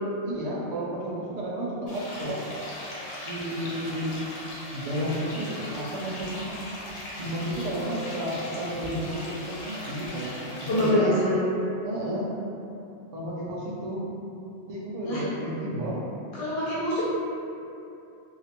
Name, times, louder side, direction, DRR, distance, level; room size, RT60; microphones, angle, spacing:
voice 1, 0.2-2.4 3.1-4.3 4.7-6.5 7.1-10.4 10.7-11.3 11.8-12.3 13.1-14.0 14.7-16.0, right 1 dB, 60° right, -5 dB, 0.4 m, -32 dB
sound 1, 1.9-10.9, left 1 dB, 55° left, 0.4 m, -39 dB
voice 2, 10.7-11.4 15.1-15.2 16.3-17.1, left 1 dB, 75° left, -9 dB, 0.9 m, -25 dB
2.4 x 2.1 x 2.8 m, 2.7 s
omnidirectional pair, 1.2 m